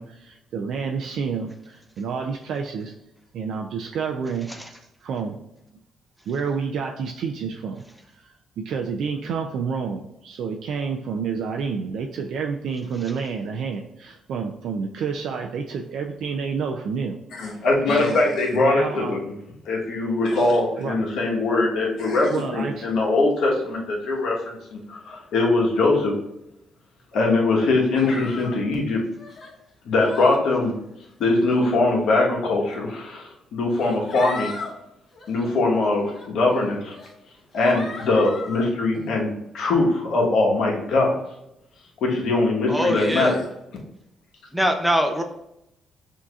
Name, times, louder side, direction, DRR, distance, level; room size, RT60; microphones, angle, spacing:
voice 1, 0.0-2.9 3.3-4.5 5.0-5.5 6.3-7.8 8.2-17.6 17.9-18.2 18.5-19.2 20.8-21.0 22.3-22.9, right 5 dB, 75° right, 2 dB, 0.4 m, -29 dB
voice 2, 17.4-19.3 19.6-26.1 27.1-29.0 29.8-30.7 31.2-34.5 35.3-37.0 37.5-41.1 42.0-43.4, left 2 dB, 75° left, -2 dB, 1.2 m, -22 dB
sound 1, 27.9-28.6 29.2-29.5 30.0-30.4 31.3-31.7 32.7-32.8 33.7-34.7 35.1-35.5 36.1-36.3 36.9-37.1 37.5-38.7, left 3 dB, 45° left, 1.2 m, -37 dB
voice 3, 42.7-43.4 44.5-45.2, equal, 5° right, 4 dB, 0.6 m, -23 dB
6.2 x 2.7 x 2.4 m, 0.84 s
cardioid pair, 90°, 0 cm